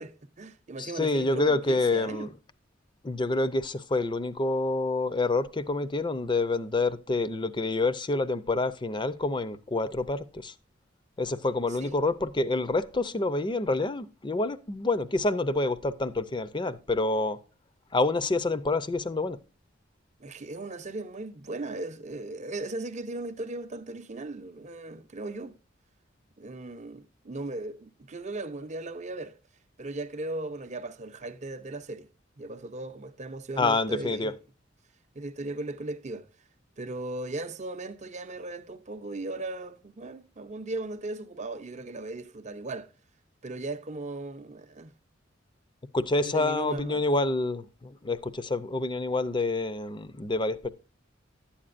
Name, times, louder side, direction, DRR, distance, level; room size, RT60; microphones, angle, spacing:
voice 1, 0.0-2.3 11.8-12.0 20.2-25.6 26.4-29.4 29.8-32.1 32.4-34.4 35.1-36.2 36.8-42.9 43.4-44.9 46.2-47.0, right 2 dB, 40° right, 0.6 m, -37 dB
voice 2, 0.8-2.3 3.0-10.5 11.2-17.4 17.9-19.4 33.6-34.3 45.9-50.7, left 2 dB, 25° left, 0.6 m, -27 dB
11.5 x 8.6 x 2.5 m
head